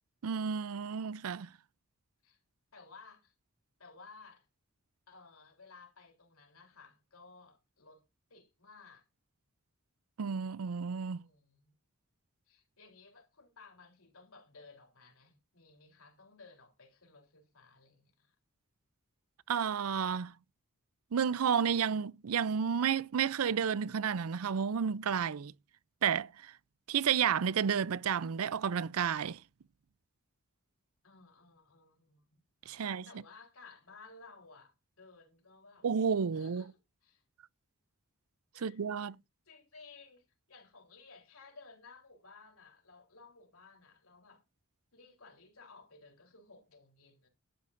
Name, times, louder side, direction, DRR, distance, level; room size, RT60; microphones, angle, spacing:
voice 1, 0.2-1.5 10.2-11.2 19.5-20.3 21.1-25.5 26.0-26.5 26.9-29.4 32.7-33.1 35.8-36.6 38.6-39.2, right 7 dB, 80° right, 0.5 m, -31 dB
voice 2, 2.7-3.3 3.8-4.5 5.1-8.0 8.3-9.1 11.1-11.7 12.5-18.4 31.0-35.9 36.3-37.2 38.5-39.1 39.5-44.4 44.9-47.3, left 4 dB, 75° left, 3.6 m, -57 dB
14.0 x 12.0 x 2.6 m
head